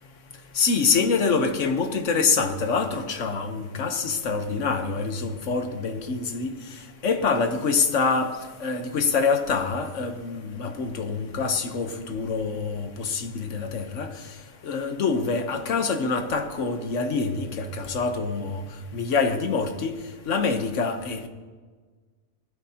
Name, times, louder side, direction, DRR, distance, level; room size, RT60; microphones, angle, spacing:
voice 1, 0.6-6.5 7.0-8.3 8.6-14.1 14.6-18.6 18.9-19.9 20.3-21.3, left 4 dB, 85° left, 1.4 m, -25 dB
19.0 x 12.0 x 2.9 m
omnidirectional pair, 1.2 m